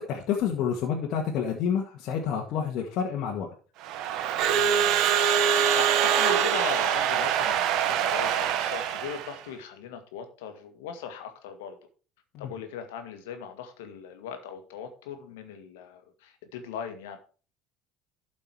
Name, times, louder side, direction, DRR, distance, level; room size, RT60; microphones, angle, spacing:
voice 1, 0.0-3.5 12.3-12.5, left 7 dB, 60° left, 0 dB, 1.8 m, -29 dB
Crowd / Alarm, 3.8-9.4, right 9 dB, 60° right, 1.1 m, -24 dB
voice 2, 4.4-5.0 5.3-11.8 12.4-17.2, left 7 dB, 75° left, 6 dB, 1.8 m, -39 dB
12.0 x 5.3 x 4.7 m, 0.37 s
hypercardioid pair, 70°, 0 cm